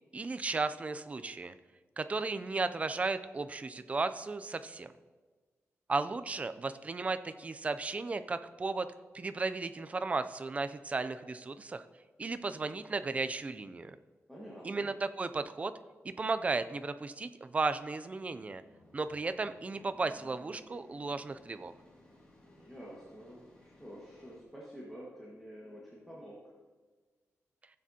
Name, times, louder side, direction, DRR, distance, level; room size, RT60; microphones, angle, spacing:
voice 1, 0.1-1.5 2.0-4.9 5.9-8.9 9.1-11.8 12.2-14.0 14.6-15.7 16.0-18.6 18.9-21.7, right 3 dB, 25° right, 11 dB, 0.4 m, -35 dB
voice 2, 14.3-14.9 22.4-26.4, equal, 5° left, -6 dB, 1.6 m, -49 dB
sound 1, 18.1-24.4, left 1 dB, 20° left, 2.3 m, -60 dB
15.5 x 7.4 x 2.8 m, 1.4 s
wide cardioid pair, 140°, 5 cm